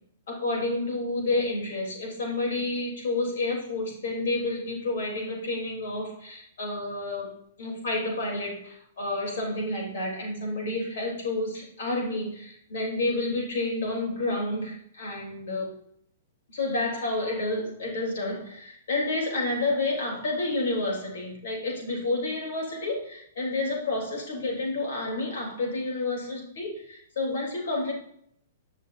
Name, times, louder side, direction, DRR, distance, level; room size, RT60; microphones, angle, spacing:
voice 1, 0.3-7.3 7.6-15.7 16.5-27.9, left 2 dB, 75° left, -2 dB, 3.5 m, -30 dB
10.5 x 6.3 x 2.7 m, 0.68 s
hypercardioid pair, 155°, 0 cm